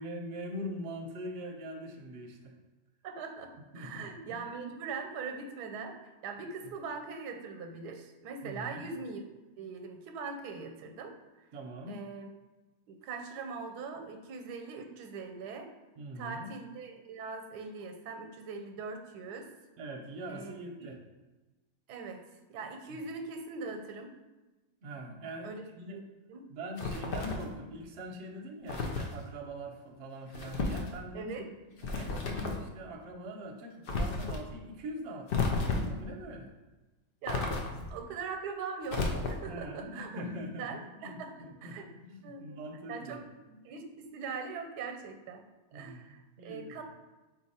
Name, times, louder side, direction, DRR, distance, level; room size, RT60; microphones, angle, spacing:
voice 1, 0.0-2.5 3.7-4.4 6.6-6.7 8.4-8.8 11.5-12.0 16.0-16.5 19.8-21.0 22.9-23.0 24.8-25.5 25.8-26.0 26.5-31.3 31.8-36.5 39.5-43.2 45.7-46.8, equal, 60° right, 2 dB, 0.8 m, -43 dB
voice 2, 3.0-9.2 9.6-11.5 11.9-12.3 12.9-15.7 16.2-19.5 20.3-20.5 21.9-22.2 22.5-24.1 25.4-25.6 25.9-26.0 26.3-26.5 31.1-31.5 31.9-32.0 37.2-37.6 37.9-40.1 40.6-41.9 42.2-42.6 42.9-45.5 45.7-46.8, right 4 dB, 90° right, 5 dB, 1.1 m, -41 dB
sound 1, 26.8-27.5 28.7-29.1 30.3-30.9 31.8-32.7 33.9-34.4 35.3-36.0 37.3-38.0 38.9-39.6, left 3 dB, 90° left, 0.4 m, -32 dB
4.1 x 2.8 x 4.1 m, 1.1 s
omnidirectional pair, 1.7 m